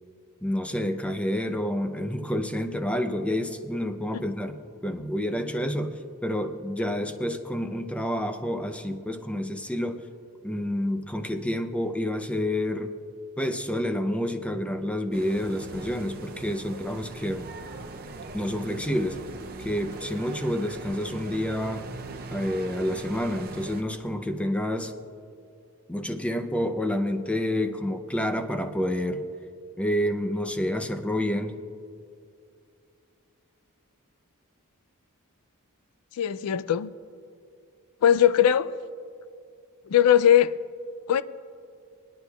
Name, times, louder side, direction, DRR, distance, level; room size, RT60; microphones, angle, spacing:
voice 1, 0.4-10.0 10.4-12.9 13.4-17.5 18.3-19.2 19.6-21.9 22.3-24.9 25.9-29.3 29.8-31.6, left 1 dB, 5° left, 0.5 m, -29 dB
sound 1, 15.1-23.8, right 3 dB, 45° right, 0.6 m, -40 dB
voice 2, 36.2-36.9 38.0-38.7 39.9-40.5 41.1-41.2, left 10 dB, 75° left, 0.4 m, -20 dB
22.5 x 9.7 x 2.3 m
head